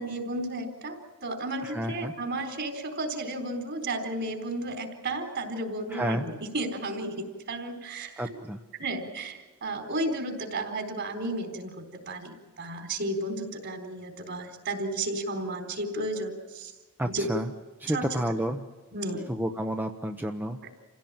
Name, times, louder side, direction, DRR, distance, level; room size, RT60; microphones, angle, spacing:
voice 1, 0.0-8.4 8.8-16.7 17.1-17.3 17.9-18.0 18.9-19.2, right 2 dB, 55° right, 4 dB, 4.0 m, -33 dB
voice 2, 1.6-2.1 5.9-6.3 8.2-8.6 17.0-17.5 17.8-18.7 19.3-20.6, right 1 dB, 10° right, 4 dB, 0.8 m, -30 dB
28.0 x 16.5 x 8.8 m, 1.3 s
head